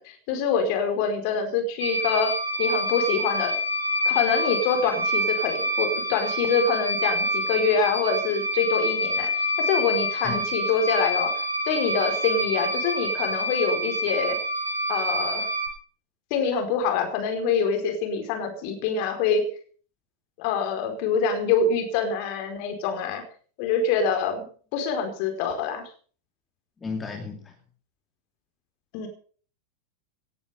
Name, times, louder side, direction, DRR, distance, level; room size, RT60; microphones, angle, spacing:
voice 1, 0.0-3.6 4.0-11.3 11.7-14.4 14.9-15.5 16.3-19.4 20.4-23.2 23.6-24.4 24.7-25.8 28.9-29.1, left 5 dB, 45° left, 5 dB, 4.7 m, -25 dB
sound 1, 1.8-15.7, equal, 90° right, 3.7 m, -27 dB
voice 2, 26.8-27.5, left 4 dB, 15° left, 3 dB, 2.7 m, -33 dB
18.5 x 11.0 x 5.6 m, 0.42 s
figure-of-eight pair, 90°, 0 cm